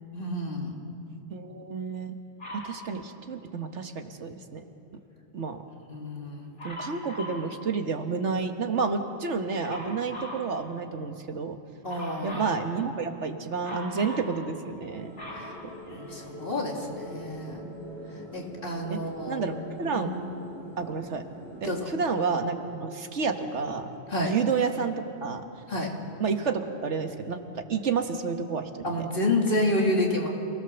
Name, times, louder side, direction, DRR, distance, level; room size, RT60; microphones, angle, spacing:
voice 1, 0.1-0.7 5.9-6.5 11.8-12.4 15.4-15.5 15.9-17.6 18.3-19.4 19.9-20.0 21.6-21.9 24.1-24.3 25.7-25.9 28.8-30.3, left 1 dB, 50° left, 0 dB, 2.9 m, -29 dB
voice 2, 1.3-2.1 2.5-4.6 5.3-5.6 6.6-11.6 12.2-15.1 17.8-17.9 18.9-19.0 19.3-20.1 20.8-21.2 21.6-23.9 24.2-24.9 25.2-25.4 26.2-29.1, right 5 dB, 75° right, 6 dB, 1.6 m, -30 dB
Dog, 2.4-2.8 6.6-7.4 9.6-10.4 11.9-12.6 13.6-14.3 14.8-16.3 17.1-17.2, equal, 75° left, 6.7 m, -39 dB
sound 1, 14.9-21.7, equal, ahead, 6.3 m, -43 dB
28.0 x 18.0 x 6.9 m, 2.7 s
omnidirectional pair, 1.2 m